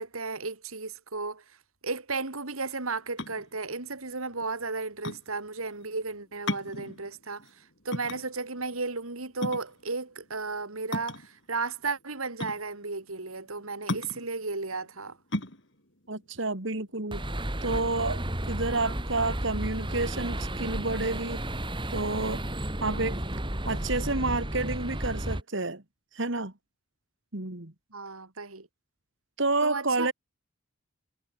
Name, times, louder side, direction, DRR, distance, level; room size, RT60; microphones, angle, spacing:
voice 1, 0.0-1.4 1.8-7.4 7.8-15.2 22.8-23.0 27.9-28.7 29.6-30.1, right 3 dB, 85° right, 3.1 m, -34 dB
sound 1, 3.0-17.4, left 1 dB, 55° left, 6.7 m, -37 dB
voice 2, 16.1-17.2 17.6-18.2 18.5-21.4 21.9-22.4 22.8-23.2 23.7-25.8 26.1-26.5 27.3-27.7 29.4-30.1, right 3 dB, 60° right, 2.4 m, -29 dB
sound 2, 17.1-25.4, right 1 dB, 25° right, 3.7 m, -33 dB
head